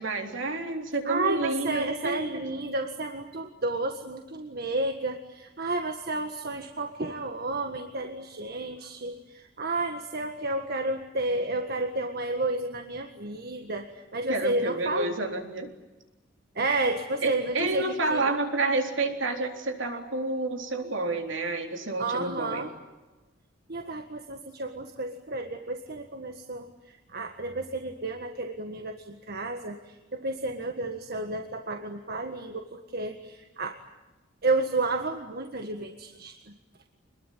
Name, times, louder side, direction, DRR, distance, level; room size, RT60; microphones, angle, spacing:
voice 1, 0.0-2.2 14.3-15.7 17.2-22.6, right 2 dB, 70° right, 4 dB, 3.8 m, -29 dB
voice 2, 1.0-15.1 16.5-18.2 22.0-22.7 23.7-26.7 27.1-29.8 30.1-33.8 34.4-36.3, right 2 dB, 50° right, 5 dB, 1.7 m, -31 dB
26.5 x 21.5 x 9.3 m, 1.1 s
head